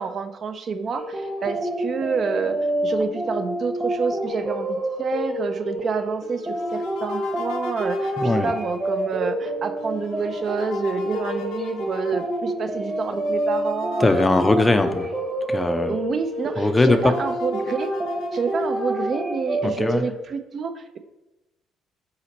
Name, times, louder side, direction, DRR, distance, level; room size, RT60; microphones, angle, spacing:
voice 1, 0.0-14.3 15.8-17.9 18.3-21.0, right 5 dB, 50° right, 9 dB, 0.3 m, -28 dB
sound 1, 1.0-20.0, right 1 dB, 20° right, 0.8 m, -28 dB
sound 2, 6.2-15.5 16.0-16.1 16.3-19.1, left 5 dB, 75° left, 0.5 m, -42 dB
voice 2, 8.2-8.5 14.0-15.1 15.5-16.0 16.6-17.1 19.6-20.1, left 2 dB, 20° left, 9 dB, 0.4 m, -20 dB
4.1 x 2.9 x 4.0 m, 0.97 s
hypercardioid pair, 55°, 0 cm